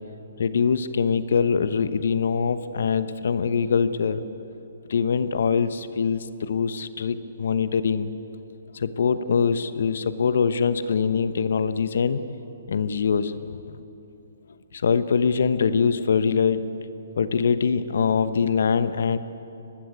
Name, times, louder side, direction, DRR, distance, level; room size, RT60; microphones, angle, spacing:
voice 1, 0.4-4.2 4.9-8.1 8.7-12.2 12.7-13.8 14.7-16.6 17.2-19.2, left 6 dB, 65° left, 12 dB, 1.1 m, -23 dB
23.5 x 19.0 x 8.3 m, 2.8 s
figure-of-eight pair, 130°, 0 cm